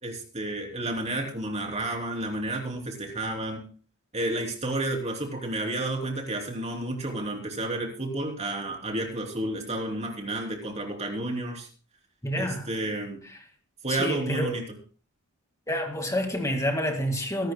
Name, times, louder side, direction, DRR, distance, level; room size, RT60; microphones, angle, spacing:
voice 1, 0.0-3.6 4.1-11.7 12.4-13.2 13.8-14.6, right 2 dB, 30° right, 3.3 m, -31 dB
voice 2, 12.2-12.7 13.2-13.4 13.9-14.5 15.7-17.5, equal, 15° left, 2.0 m, -28 dB
23.5 x 12.0 x 2.3 m
head